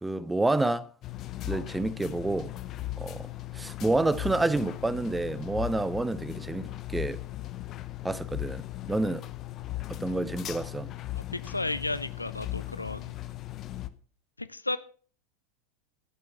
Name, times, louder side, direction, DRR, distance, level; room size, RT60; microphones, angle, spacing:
voice 1, 0.0-0.9 1.5-2.5 3.0-3.3 3.5-7.2 8.0-9.3 9.9-10.9, right 2 dB, 10° right, 0.7 m, -29 dB
sound 1, 1.0-13.9, left 15 dB, 35° left, 0.9 m, -38 dB
voice 2, 11.3-13.1 14.4-14.8, left 2 dB, 85° left, 0.6 m, -33 dB
12.5 x 8.7 x 6.0 m
figure-of-eight pair, 85°, 0 cm